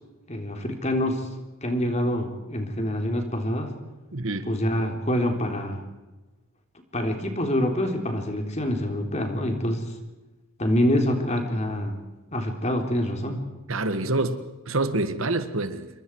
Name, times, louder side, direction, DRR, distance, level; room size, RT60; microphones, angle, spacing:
voice 1, 0.3-1.3 1.6-3.7 4.5-5.8 6.9-9.9 10.6-11.9 12.3-13.4, left 1 dB, 30° left, 3.6 m, -26 dB
voice 2, 4.1-4.5 13.7-15.9, right 2 dB, 75° right, 1.7 m, -27 dB
27.5 x 23.5 x 4.8 m
head